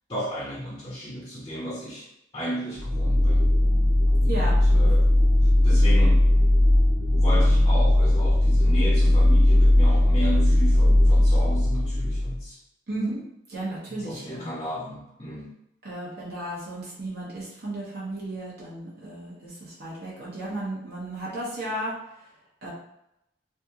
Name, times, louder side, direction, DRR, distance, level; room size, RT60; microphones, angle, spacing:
voice 1, 0.1-2.1 2.3-3.5 4.1-4.2 4.7-5.1 5.6-6.5 7.1-12.6 13.9-15.5, equal, 25° left, -5 dB, 0.6 m, -34 dB
sound 1, 2.8-12.4, left 1 dB, 35° right, 0.4 m, -18 dB
voice 2, 4.2-4.9 12.9-13.2 13.5-14.5 15.8-21.9 22.6-22.7, right 1 dB, 55° right, -7 dB, 1.2 m, -34 dB
3.4 x 2.4 x 2.8 m, 0.84 s
head